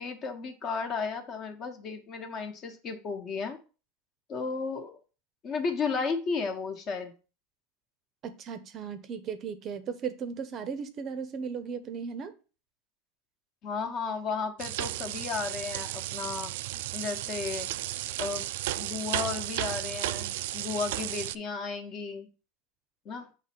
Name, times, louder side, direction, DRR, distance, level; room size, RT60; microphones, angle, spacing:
voice 1, 0.0-3.6 4.3-5.0 5.4-7.1 13.6-16.5 16.9-17.7 18.2-18.4 18.7-22.3 23.0-23.3, left 5 dB, 35° left, 1.1 m, -34 dB
voice 2, 8.2-12.3, right 6 dB, 30° right, 0.7 m, -36 dB
sound 1, 14.6-21.4, right 15 dB, 70° right, 0.3 m, -34 dB
6.7 x 3.1 x 5.9 m
supercardioid pair, 145°, 0 cm